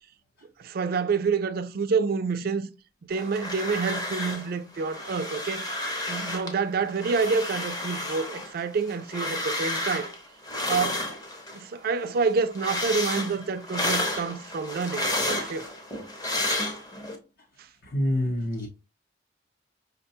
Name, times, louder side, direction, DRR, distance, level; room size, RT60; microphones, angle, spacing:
voice 1, 0.6-2.7 3.1-5.8 6.1-10.1 10.7-11.0 11.5-15.7, right 5 dB, 55° right, 0.4 m, -28 dB
sound 1, 3.1-4.5 4.8-6.5 6.9-11.6 12.0-17.2, left 1 dB, 20° left, 0.7 m, -31 dB
voice 2, 17.9-18.7, left 1 dB, 55° left, 0.7 m, -26 dB
5.4 x 2.2 x 2.7 m
head